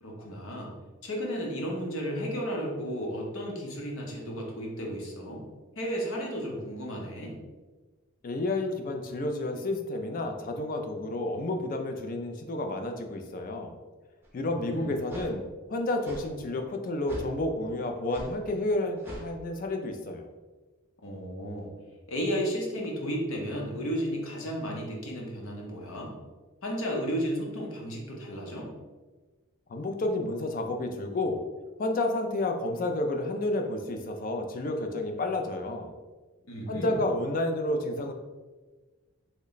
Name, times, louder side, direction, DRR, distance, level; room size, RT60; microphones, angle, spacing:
voice 1, 0.0-0.7 1.0-5.4 5.8-7.4 14.4-15.0 21.0-21.7 22.1-26.1 26.6-28.7 36.5-37.0, equal, 70° left, -1 dB, 0.7 m, -33 dB
voice 2, 8.2-13.7 14.3-20.3 29.7-31.4 31.8-35.9 36.7-38.1, left 2 dB, 40° left, 5 dB, 0.3 m, -30 dB
sound 1, 14.2-14.3 15.1-15.3 16.0-16.2 17.1-17.3 18.1-18.3 19.0-19.3, right 1 dB, 10° right, 0.5 m, -40 dB
3.1 x 2.2 x 3.8 m, 1.3 s
head